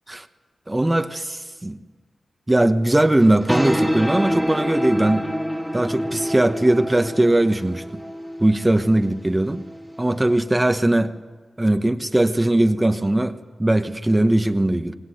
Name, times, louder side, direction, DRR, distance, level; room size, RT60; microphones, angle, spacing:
voice 1, 0.7-1.8 2.5-5.3 5.7-7.8 8.4-9.6 10.0-11.1 11.6-15.0, right 1 dB, 20° right, 8 dB, 1.1 m, -19 dB
sound 1, 3.2-10.4, equal, ahead, 1.8 m, -27 dB
21.5 x 19.5 x 9.3 m, 1.4 s
cardioid pair, 50°, 0 cm